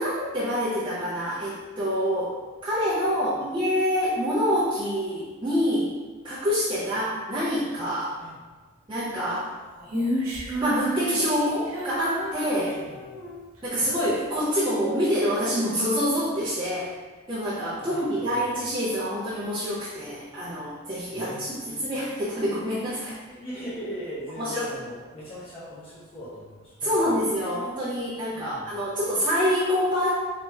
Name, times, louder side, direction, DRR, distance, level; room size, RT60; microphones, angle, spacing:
voice 1, 0.0-2.4 2.6-6.0 6.2-8.2 8.9-9.4 10.6-12.8 13.6-16.9 17.3-23.2 24.4-24.7 26.8-30.1, equal, 20° right, -10 dB, 0.6 m, -26 dB
voice 2, 9.2-10.4 12.6-13.3 13.7-13.9 17.8-18.5 21.1-22.1 23.3-27.2 28.3-28.8, equal, 30° left, -11 dB, 0.8 m, -41 dB
Female singing, 9.9-13.4, right 1 dB, 85° right, 0.9 m, -31 dB
2.9 x 2.9 x 3.3 m, 1.3 s
head